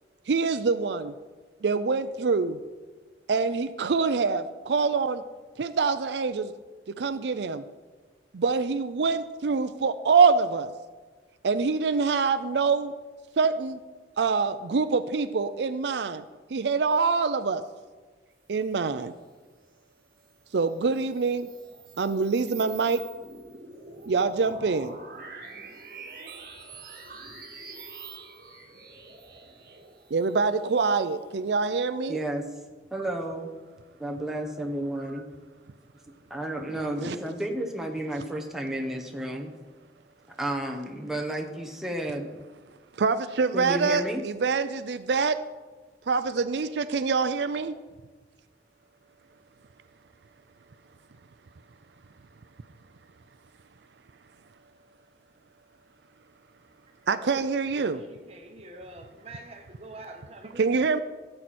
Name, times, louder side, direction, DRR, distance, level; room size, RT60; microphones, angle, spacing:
voice 1, 0.3-1.1 1.6-2.6 3.3-5.2 5.6-6.5 7.0-7.6 8.3-10.7 11.4-12.9 13.4-13.8 14.2-16.2 16.5-17.6 18.5-19.1 20.5-21.5 22.0-23.0 24.1-25.0 30.1-32.2 37.0-37.2 42.9-45.4 46.1-47.7 57.1-58.0 60.6-61.0, right 4 dB, 80° right, 0.5 m, -25 dB
sound 1, 20.7-31.6, right 4 dB, 50° right, 1.7 m, -46 dB
voice 2, 32.1-32.4 32.9-33.5 34.0-35.3 36.3-39.5 40.4-42.3 43.5-44.2, right 1 dB, 5° right, 1.1 m, -32 dB
voice 3, 57.0-57.5 58.0-61.0, right 2 dB, 35° right, 1.3 m, -45 dB
16.0 x 7.7 x 4.2 m
head